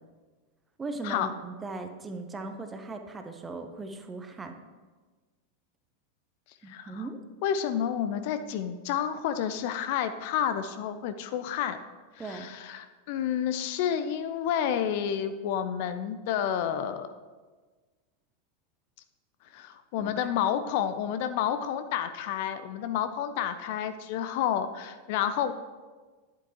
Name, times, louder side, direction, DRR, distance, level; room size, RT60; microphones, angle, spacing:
voice 1, 0.8-4.6 6.6-7.2 12.2-12.5 20.0-20.3, right 3 dB, 15° right, 6 dB, 0.8 m, -38 dB
voice 2, 6.7-7.1 7.4-11.8 12.1-17.1 19.5-25.5, left 9 dB, 50° left, 10 dB, 0.5 m, -30 dB
10.5 x 8.2 x 2.9 m, 1.4 s
figure-of-eight pair, 90°, 0 cm